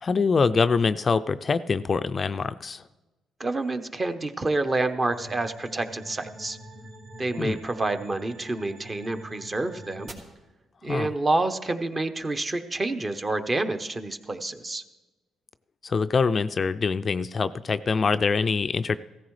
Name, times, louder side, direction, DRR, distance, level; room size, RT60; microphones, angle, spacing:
voice 1, 0.0-2.8 7.4-7.6 10.9-11.1 15.8-19.0, left 5 dB, 40° left, 12 dB, 0.3 m, -24 dB
voice 2, 3.4-6.6 7.2-10.2 10.8-14.8, right 2 dB, 25° right, 8 dB, 0.9 m, -28 dB
sound 1, 5.1-10.1, right 1 dB, 60° right, 2.6 m, -45 dB
16.0 x 14.5 x 3.2 m, 1.1 s
cardioid pair, 90°, 0 cm